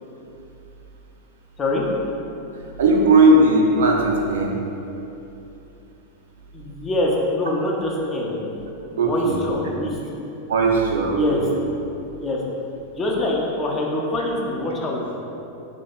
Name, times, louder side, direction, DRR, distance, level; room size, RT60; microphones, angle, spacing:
voice 1, 2.8-4.6 9.0-9.4 10.5-11.6, right 2 dB, 60° right, 0 dB, 0.4 m, -17 dB
voice 2, 6.5-8.5 8.9-10.0 11.1-11.4 12.2-12.4 12.9-15.2, left 1 dB, 20° left, -3 dB, 0.5 m, -25 dB
2.8 x 2.0 x 4.0 m, 2.9 s
figure-of-eight pair, 90°, 0 cm